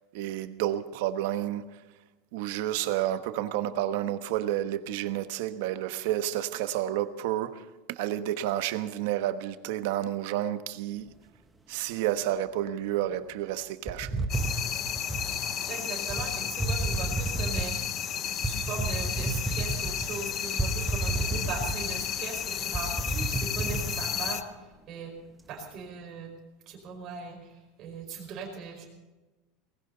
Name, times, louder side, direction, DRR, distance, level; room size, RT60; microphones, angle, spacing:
voice 1, 0.1-1.6 2.3-11.1 11.7-14.3, right 12 dB, 60° right, 1.2 m, -30 dB
sound 1, 13.9-15.3 16.1-16.3 16.6-17.8 18.4-20.1 20.6-22.0 22.4-22.5 22.7-23.9, right 2 dB, 5° right, 1.1 m, -31 dB
sound 2, 14.3-24.4, left 9 dB, 25° left, 0.8 m, -33 dB
voice 2, 15.6-17.7 18.4-24.4 24.9-25.1 25.5-26.3 26.7-27.5 27.8-28.9, right 5 dB, 30° right, 4.9 m, -39 dB
20.0 x 17.5 x 4.0 m
supercardioid pair, 175°, 0 cm